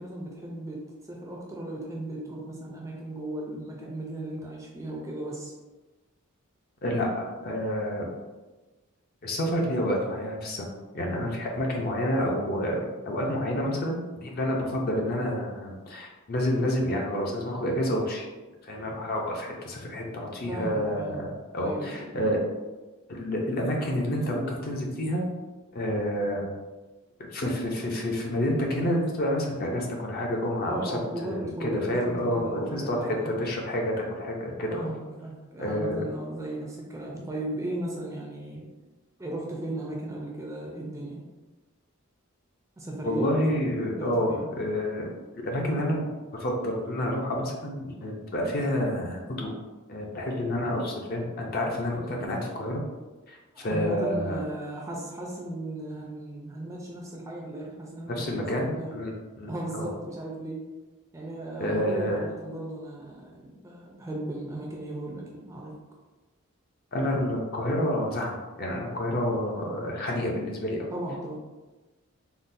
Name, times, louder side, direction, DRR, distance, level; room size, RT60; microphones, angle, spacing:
voice 1, 0.0-5.5 20.5-21.3 21.6-22.2 30.7-33.4 34.7-38.7 39.2-41.2 42.8-43.2 44.0-44.5 53.5-59.0 59.5-60.7 61.1-65.8 70.9-71.4, right 1 dB, 15° right, -2 dB, 0.4 m, -36 dB
voice 2, 6.8-8.1 9.2-10.7 10.9-18.2 18.6-22.4 23.1-25.2 25.7-26.5 27.3-30.9 31.2-34.8 35.6-36.0 43.0-45.1 45.4-49.5 49.9-52.8 53.3-54.4 58.1-59.1 59.4-59.9 61.6-62.2 66.9-70.9, equal, 45° left, 0 dB, 0.5 m, -29 dB
3.7 x 2.1 x 2.6 m, 1.2 s
head